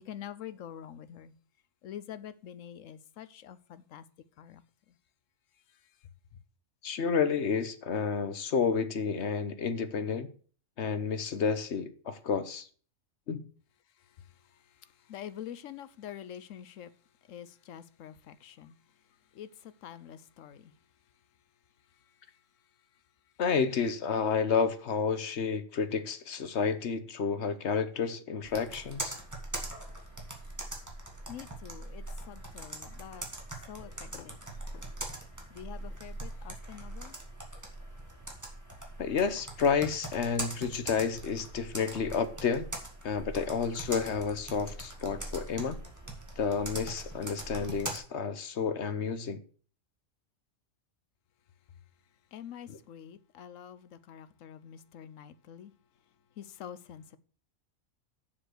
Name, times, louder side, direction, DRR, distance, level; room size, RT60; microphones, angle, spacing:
voice 1, 0.0-1.3 1.8-4.0 4.4-4.6 15.1-16.9 17.3-18.8 19.3-20.7 31.3-33.3 33.7-34.4 34.7-34.8 35.5-37.1 52.3-55.7 56.4-57.2, left 10 dB, 85° left, 1.1 m, -46 dB
voice 2, 6.8-10.3 10.8-12.7 13.3-13.4 23.4-29.2 39.0-42.7 43.0-45.8 46.4-49.4 52.7-52.8, left 6 dB, 65° left, 1.1 m, -30 dB
Computer keyboard, 28.4-48.0, right 1 dB, 15° right, 2.0 m, -42 dB
7.1 x 7.1 x 6.5 m
omnidirectional pair, 1.3 m